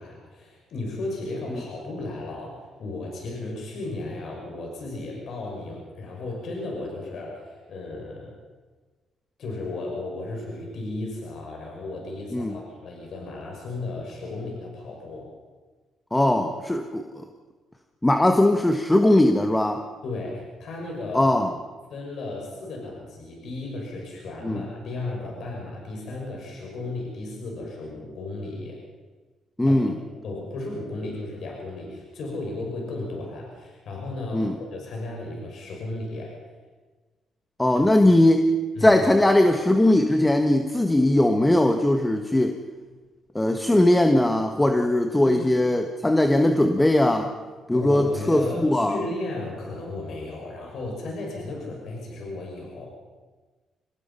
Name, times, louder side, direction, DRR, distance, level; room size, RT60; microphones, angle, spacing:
voice 1, 0.0-8.3 9.4-15.3 20.0-21.3 21.9-28.8 29.6-29.8 30.1-36.3 37.7-37.9 38.8-39.0 45.2-45.5 47.7-52.9, left 2 dB, 65° left, -1 dB, 6.3 m, -34 dB
voice 2, 16.1-17.2 18.0-19.8 21.1-21.5 24.4-24.6 29.6-29.9 34.3-34.5 37.6-38.4 38.8-42.6 43.3-47.3 47.7-49.0, left 1 dB, 10° left, 5 dB, 1.5 m, -20 dB
26.0 x 18.5 x 5.7 m, 1.3 s
cardioid pair, 90°, 0 cm